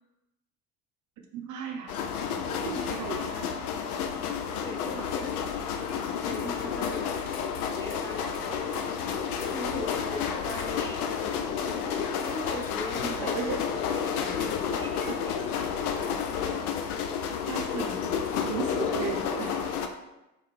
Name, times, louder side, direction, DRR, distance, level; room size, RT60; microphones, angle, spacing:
voice 1, 1.3-2.3 2.6-3.5 13.0-13.6 14.2-14.4 15.0-15.2 16.3-16.5 17.5-19.8, right 6 dB, 40° right, 3 dB, 0.6 m, -36 dB
sound 1, 1.9-19.9, left 7 dB, 75° left, 0.5 m, -31 dB
voice 2, 4.6-5.3 5.6-7.3 7.6-11.6 12.2-13.4 13.8-15.3, equal, 5° left, 0 dB, 0.6 m, -41 dB
3.5 x 3.1 x 3.5 m, 0.95 s
figure-of-eight pair, 50°, 45 cm